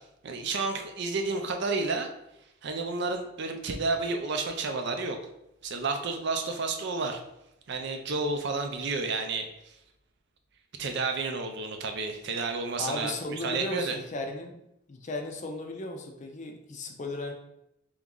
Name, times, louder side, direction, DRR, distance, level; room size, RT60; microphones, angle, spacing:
voice 1, 0.2-2.1 2.6-5.2 5.6-7.2 7.7-9.8 10.8-14.0, right 3 dB, 60° right, 5 dB, 0.5 m, -31 dB
voice 2, 12.8-14.6 14.9-17.3, left 2 dB, 35° left, 3 dB, 0.5 m, -36 dB
3.5 x 3.0 x 3.7 m, 0.83 s
head